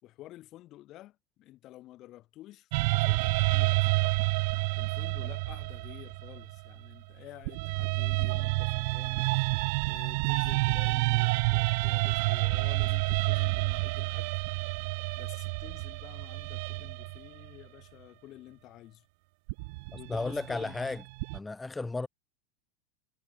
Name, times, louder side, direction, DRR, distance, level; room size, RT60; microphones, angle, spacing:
voice 1, 0.0-4.2 4.8-9.3 9.8-14.3 15.1-19.0 19.9-20.9, left 15 dB, 45° left, 6.2 m, -50 dB
sound 1, 2.7-6.9 7.5-17.5 19.5-21.4, right 28 dB, 65° right, 0.3 m, -29 dB
voice 2, 19.9-21.0 21.3-22.1, left 3 dB, 10° left, 0.3 m, -34 dB
supercardioid pair, 120°, 0 cm